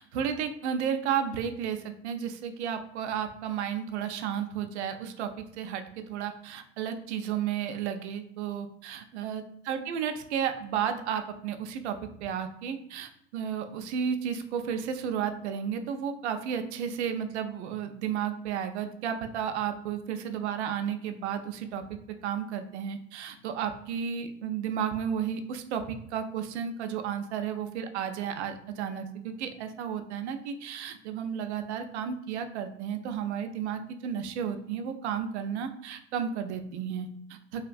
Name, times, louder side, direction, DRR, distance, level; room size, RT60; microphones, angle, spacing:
voice 1, 0.0-21.8 22.2-37.6, right 8 dB, 70° right, 7 dB, 0.5 m, -33 dB
2.7 x 2.5 x 2.4 m, 0.75 s
figure-of-eight pair, 80°, 35 cm